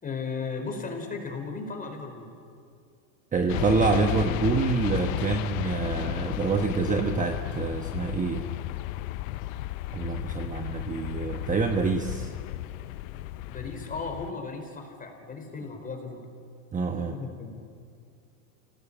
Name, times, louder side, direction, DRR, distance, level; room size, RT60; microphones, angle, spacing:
voice 1, 0.0-2.3 13.5-16.3 17.0-17.8, left 4 dB, 20° left, 4 dB, 4.5 m, -36 dB
voice 2, 3.3-8.4 9.9-12.3 16.7-17.1, right 4 dB, 20° right, 4 dB, 1.2 m, -27 dB
sound 1, 3.5-14.3, left 15 dB, 65° left, 0.9 m, -33 dB
27.5 x 18.0 x 8.7 m, 2.3 s
supercardioid pair, 130°, 42 cm